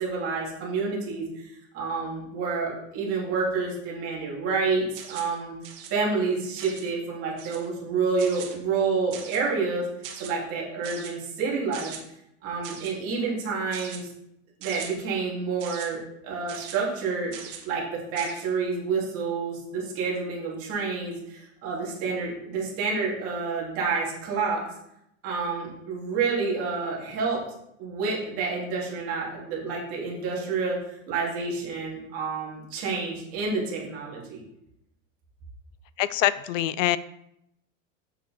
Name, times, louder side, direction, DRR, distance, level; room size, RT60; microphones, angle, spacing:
voice 1, 0.0-5.6 5.9-9.9 10.1-11.9 12.4-14.0 14.6-17.3 17.6-24.6 25.2-27.4 27.8-34.4, right 4 dB, 35° right, -4 dB, 2.7 m, -29 dB
sound 1, 4.9-5.4 5.6-5.9 6.6-6.9 7.4-7.7 8.2-8.6 9.1-9.5 10.0-10.3 10.8-11.1 11.7-12.0 12.6-12.9 13.7-14.0 14.6-14.9 15.6-15.9 16.5-16.7 17.3-17.6 18.2-18.4, right 8 dB, 65° right, 1.8 m, -40 dB
voice 2, 36.0-37.0, left 14 dB, 75° left, 17 dB, 0.5 m, -24 dB
7.6 x 6.6 x 3.4 m, 0.80 s
supercardioid pair, 160°, 39 cm